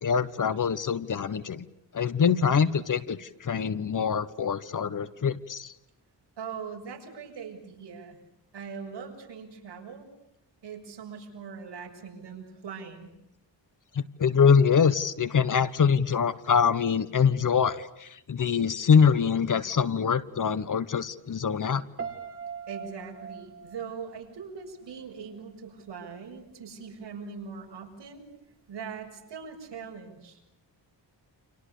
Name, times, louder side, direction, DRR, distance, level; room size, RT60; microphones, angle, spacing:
voice 1, 0.0-1.7 1.9-5.7 13.9-21.8, left 6 dB, 45° left, 14 dB, 1.3 m, -24 dB
voice 2, 6.4-8.2 8.5-10.1 10.6-13.1 22.7-28.3 28.7-30.4, right 6 dB, 70° right, 2 dB, 7.1 m, -41 dB
Piano, 22.0-25.1 25.4-25.8, right 6 dB, 30° right, 2.7 m, -41 dB
30.0 x 28.0 x 6.8 m, 0.82 s
wide cardioid pair, 150°, 43 cm